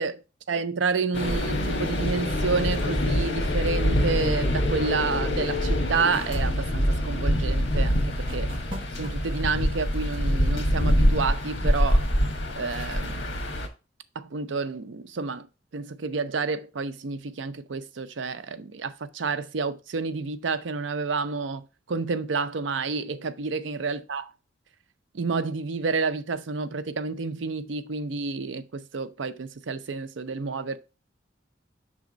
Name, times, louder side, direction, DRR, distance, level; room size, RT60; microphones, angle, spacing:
voice 1, 0.5-8.5 8.9-12.1 12.6-13.3 14.1-15.5 15.7-24.3 25.1-30.8, right 4 dB, 80° right, 0.6 m, -29 dB
sound 1, 1.1-13.7, equal, 70° left, 1.4 m, -25 dB
sound 2, 1.7-3.6 6.1-6.8 8.3-9.4, right 1 dB, 30° right, 1.1 m, -44 dB
6.1 x 3.5 x 5.0 m
head